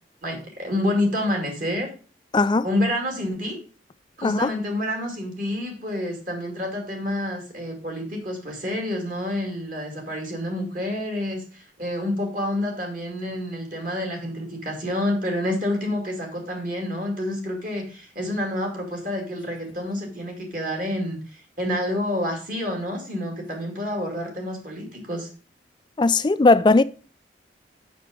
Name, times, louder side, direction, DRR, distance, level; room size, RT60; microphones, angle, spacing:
voice 1, 0.2-1.9 2.6-3.6 4.2-25.3, left 1 dB, 45° right, 2.3 m, -28 dB
voice 2, 2.3-2.7 4.2-4.5 26.0-26.8, left 3 dB, 25° left, 0.3 m, -18 dB
6.7 x 6.0 x 5.1 m
head